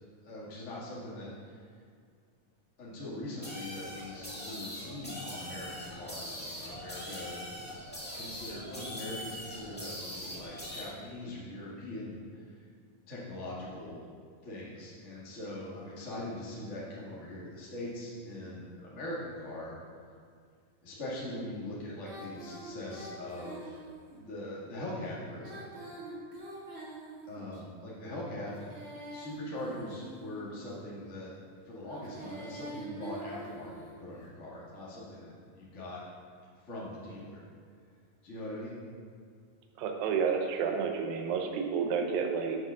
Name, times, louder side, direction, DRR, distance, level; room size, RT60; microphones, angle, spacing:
voice 1, 0.2-1.7 2.8-7.4 8.1-12.5 13.1-14.0 14.4-19.8 20.8-23.8 24.2-25.6 27.3-31.3 31.6-36.0 36.6-37.4 38.2-38.8, left 1 dB, 35° left, -7 dB, 1.2 m, -41 dB
sound 1, 3.4-10.8, equal, 10° left, 0.6 m, -42 dB
Female singing, 22.0-24.2 25.3-27.6 28.4-30.5 31.8-34.0, right 1 dB, 45° right, 1.0 m, -45 dB
voice 2, 39.8-42.6, right 6 dB, 80° right, 4 dB, 2.6 m, -30 dB
7.6 x 6.0 x 6.2 m, 2.2 s
omnidirectional pair, 4.1 m